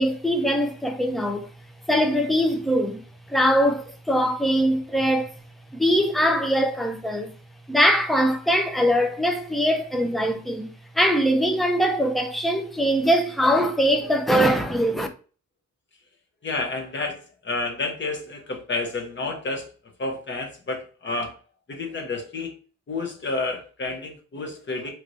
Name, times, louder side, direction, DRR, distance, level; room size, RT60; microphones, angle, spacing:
voice 1, 0.0-1.5 1.9-3.0 3.3-5.3 5.7-7.3 7.7-15.1, equal, ahead, 0.4 m, -22 dB
voice 2, 16.4-19.7 20.0-21.4 21.7-22.5 22.9-24.9, left 3 dB, 40° left, 0.9 m, -30 dB
3.2 x 3.0 x 2.6 m
wide cardioid pair, 165°, 30 cm